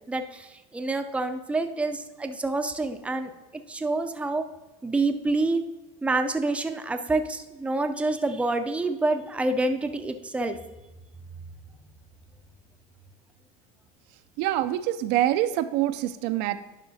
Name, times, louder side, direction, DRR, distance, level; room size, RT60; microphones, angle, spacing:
voice 1, 0.1-3.3 3.7-4.5 4.8-5.6 6.0-10.6, right 2 dB, 5° right, 6 dB, 0.4 m, -27 dB
voice 2, 14.4-16.6, right 13 dB, 65° right, 11 dB, 0.4 m, -25 dB
10.5 x 5.5 x 2.7 m, 1.1 s
supercardioid pair, 100°, 19 cm